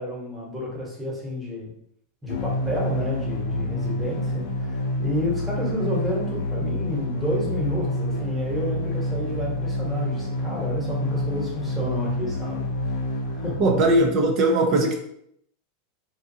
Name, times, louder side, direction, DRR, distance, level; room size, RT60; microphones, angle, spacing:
voice 1, 0.0-1.7 2.2-13.6, left 1 dB, 10° right, -4 dB, 1.1 m, -30 dB
sound 1, 2.3-14.3, left 1 dB, 75° left, 0.7 m, -28 dB
voice 2, 13.6-15.0, right 2 dB, 45° right, 2 dB, 0.5 m, -19 dB
2.5 x 2.3 x 2.7 m, 0.72 s
hypercardioid pair, 110°, 0 cm